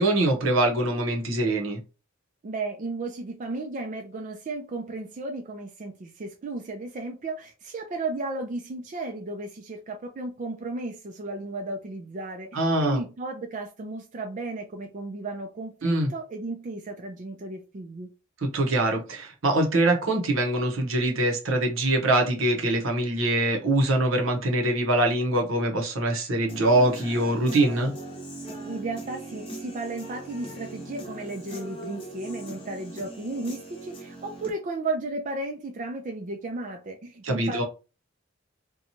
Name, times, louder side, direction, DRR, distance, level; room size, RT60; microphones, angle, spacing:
voice 1, 0.0-1.8 12.5-13.0 15.8-16.1 18.4-27.9 37.2-37.6, right 1 dB, 75° right, 0.8 m, -23 dB
voice 2, 2.4-18.1 28.7-37.6, right 2 dB, 40° right, 0.4 m, -34 dB
Human voice / Guitar, 26.5-34.5, right 2 dB, 25° left, 0.8 m, -40 dB
2.8 x 2.2 x 2.7 m
head